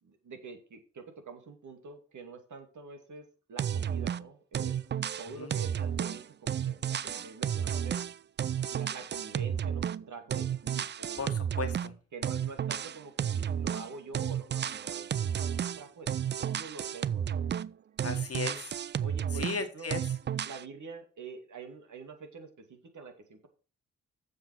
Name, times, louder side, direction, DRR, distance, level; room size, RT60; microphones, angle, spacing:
voice 1, 0.0-4.8 5.2-8.0 8.7-11.2 12.1-15.1 15.4-16.1 16.4-17.5 19.0-19.5 19.7-19.9 20.4-23.5, right 4 dB, 50° right, 2.4 m, -46 dB
sound 1, 3.6-4.3 4.5-10.1 10.3-11.9 12.2-13.9 14.1-17.7 18.0-19.6 19.9-20.6, right 9 dB, 30° right, 0.4 m, -32 dB
voice 2, 11.2-11.9 18.0-18.7 19.3-20.0, left 4 dB, 40° left, 1.7 m, -36 dB
7.5 x 7.2 x 5.9 m
hypercardioid pair, 40°, 37 cm